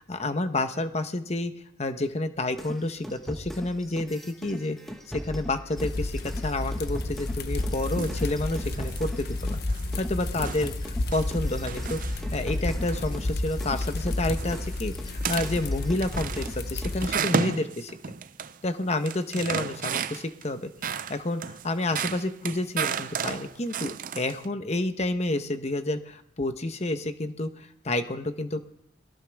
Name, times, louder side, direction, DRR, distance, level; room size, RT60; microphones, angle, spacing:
voice 1, 0.0-1.5 1.8-4.8 5.1-9.6 10.0-12.0 12.3-18.0 18.6-28.6, left 2 dB, 35° left, 9 dB, 1.0 m, -29 dB
sound 1, 2.6-9.7 9.9-17.0, equal, ahead, 1.4 m, -40 dB
sound 2, 5.8-17.1, left 2 dB, 60° left, 0.9 m, -31 dB
sound 3, 7.6-8.3 8.6-9.1 9.5-9.9 10.3-12.5 12.9-13.2 13.6-14.1 14.4-14.8 15.1-15.7 16.0-18.6 18.8-20.4 20.8-24.4, right 6 dB, 45° right, 0.5 m, -33 dB
21.5 x 17.0 x 3.5 m, 0.75 s
head